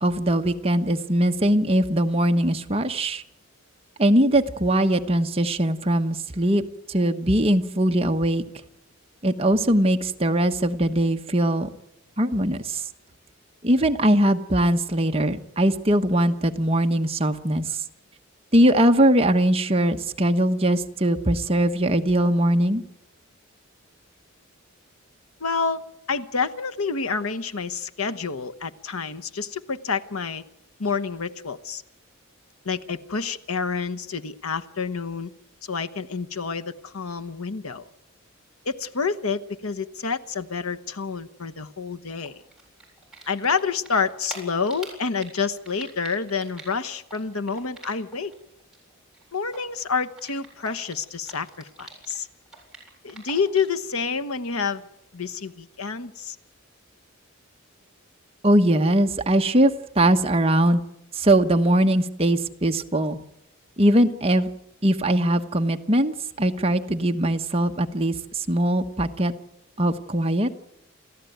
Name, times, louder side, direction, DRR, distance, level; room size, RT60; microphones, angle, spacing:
voice 1, 0.0-3.2 4.0-6.6 6.9-8.4 9.2-11.7 12.2-12.8 13.6-17.8 18.5-22.8 58.4-60.8 61.1-63.2 63.8-64.5 64.8-69.3 69.8-70.5, right 1 dB, 25° right, 5 dB, 1.1 m, -21 dB
voice 2, 25.4-25.8 26.1-30.4 30.8-31.8 32.6-35.3 35.6-37.9 38.6-42.4 43.3-48.3 49.3-52.3 53.0-54.8 55.1-56.4, left 5 dB, 85° left, 10 dB, 1.1 m, -28 dB
Typing, 42.2-43.6 43.9-48.3 48.6-52.2 52.5-53.8, right 3 dB, ahead, 7.9 m, -44 dB
29.0 x 14.5 x 9.3 m, 0.88 s
head